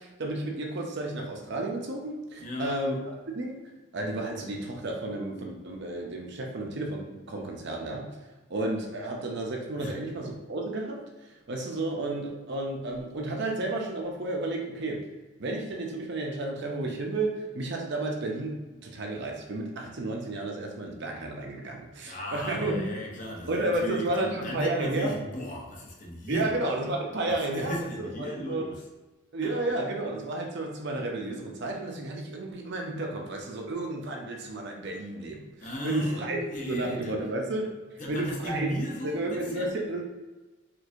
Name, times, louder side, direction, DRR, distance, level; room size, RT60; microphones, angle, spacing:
voice 1, 0.0-3.0 3.3-3.6 3.9-8.1 8.5-11.0 11.5-15.1 15.4-22.9 23.5-25.1 26.3-28.7 29.3-35.5 35.8-36.4 36.7-37.7 38.1-38.8 39.0-40.0, right 2 dB, 55° right, 1 dB, 0.6 m, -32 dB
voice 2, 2.4-2.8 9.8-10.0 22.0-26.5 27.3-28.9 29.4-29.6 35.6-37.1 38.0-39.7, equal, 35° left, -2 dB, 0.7 m, -36 dB
4.5 x 2.6 x 2.5 m, 1.2 s
head